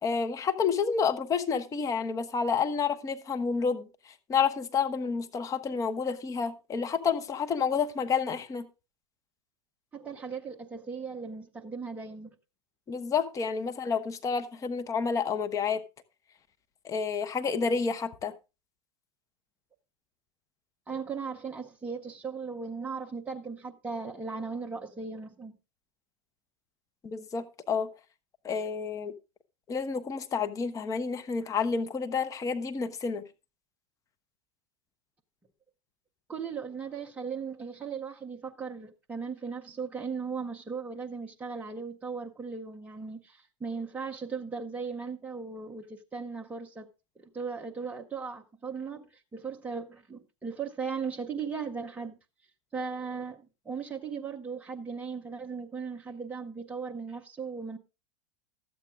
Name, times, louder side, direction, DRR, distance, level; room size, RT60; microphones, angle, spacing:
voice 1, 0.0-8.7 12.9-15.8 16.8-18.3 27.0-27.9 28.4-29.1 29.7-33.3, left 5 dB, 20° left, 1.0 m, -29 dB
voice 2, 9.9-12.4 20.9-25.6 36.3-46.9 47.2-49.1 49.3-52.2 52.7-57.8, right 5 dB, 10° right, 0.8 m, -37 dB
13.0 x 8.4 x 3.5 m
figure-of-eight pair, 90°, 16 cm